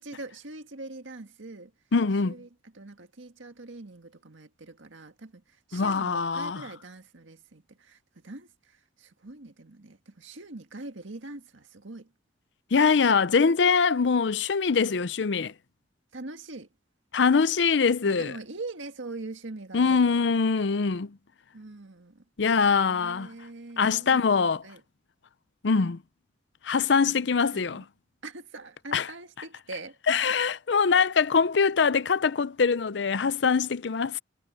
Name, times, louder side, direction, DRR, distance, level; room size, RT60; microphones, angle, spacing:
voice 1, 0.0-1.7 2.2-5.4 5.7-12.1 16.1-16.7 18.0-20.3 21.5-22.2 22.9-24.3 24.6-24.8 27.0-27.8 28.2-30.2, right 2 dB, 90° right, 1.8 m, -43 dB
voice 2, 1.9-2.3 5.7-6.6 12.7-15.5 17.1-18.3 19.7-21.2 22.4-23.3 23.8-24.6 25.6-26.0 26.6-27.8 28.9-29.1 30.1-34.2, left 5 dB, 65° left, 0.6 m, -23 dB
head